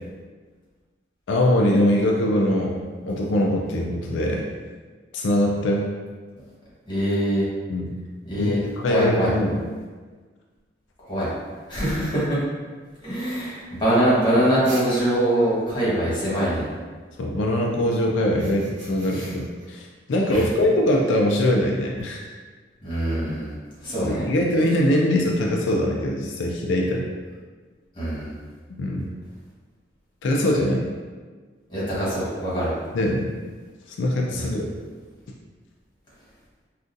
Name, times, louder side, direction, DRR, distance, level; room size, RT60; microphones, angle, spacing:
voice 1, 1.3-2.8 3.0-4.4 5.1-5.8 7.7-7.9 8.3-9.6 17.2-22.2 24.0-27.1 28.8-29.1 30.2-30.9 32.9-33.3 34.0-34.6, left 1 dB, 90° left, -1 dB, 0.4 m, -22 dB
voice 2, 6.9-7.4 8.2-8.6 8.9-9.3 11.1-11.3 11.7-12.4 13.0-16.7 19.1-19.3 20.3-20.4 22.8-23.5 23.8-24.3 27.9-28.3 31.7-32.7 34.3-34.6, right 1 dB, 25° left, -9 dB, 1.2 m, -23 dB
sound 1, 14.6-15.5 18.2-19.7, right 2 dB, 90° right, 0.7 m, -41 dB
3.7 x 2.4 x 2.5 m, 1.4 s
head